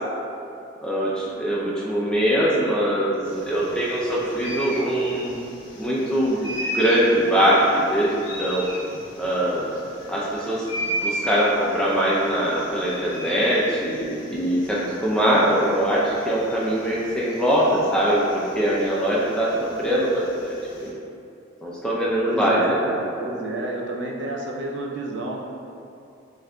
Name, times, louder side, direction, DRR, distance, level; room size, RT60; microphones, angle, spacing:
voice 1, 0.8-5.3 5.8-6.5 6.7-8.7 9.2-9.8 10.1-10.6 11.0-20.9 21.6-22.8, equal, 5° left, -6 dB, 0.4 m, -22 dB
sound 1, 3.2-20.9, equal, 80° left, 0.7 m, -36 dB
voice 2, 22.2-25.4, right 1 dB, 65° right, -1 dB, 0.4 m, -30 dB
6.2 x 2.5 x 2.2 m, 2.6 s
head